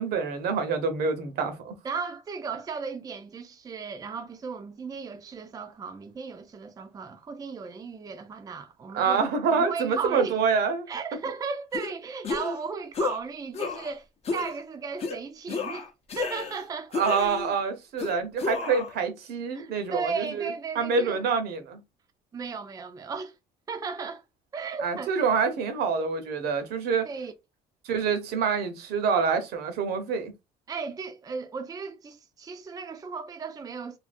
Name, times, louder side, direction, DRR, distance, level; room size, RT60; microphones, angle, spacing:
voice 1, 0.0-1.7 8.9-10.9 16.9-20.5 20.7-21.8 24.8-27.1 27.8-30.3, right 5 dB, 70° right, 0.8 m, -26 dB
voice 2, 1.8-10.4 10.9-14.1 14.3-15.9 16.2-16.9 19.5-21.2 22.3-23.4 23.7-24.2 24.5-25.2 27.0-27.3 30.7-34.0, right 5 dB, 20° right, 0.4 m, -35 dB
sound 1, 11.7-11.9 12.2-12.6 12.9-13.2 13.5-13.9 14.3-14.5 15.0-15.2 15.5-16.6 16.9-17.6 18.0-18.9, left 4 dB, 40° left, 0.6 m, -31 dB
2.7 x 2.5 x 2.5 m
cardioid pair, 110°, 17 cm